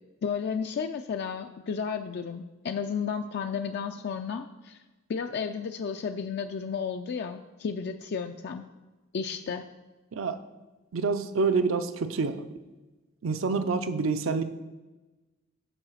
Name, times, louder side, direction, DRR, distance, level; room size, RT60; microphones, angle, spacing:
voice 1, 0.2-4.8 5.1-8.7 9.1-9.7, left 6 dB, 55° left, 6 dB, 0.4 m, -33 dB
voice 2, 10.1-10.4 10.9-12.4 13.2-14.4, right 4 dB, 70° right, 10 dB, 0.5 m, -27 dB
7.7 x 4.8 x 6.3 m, 1.2 s
head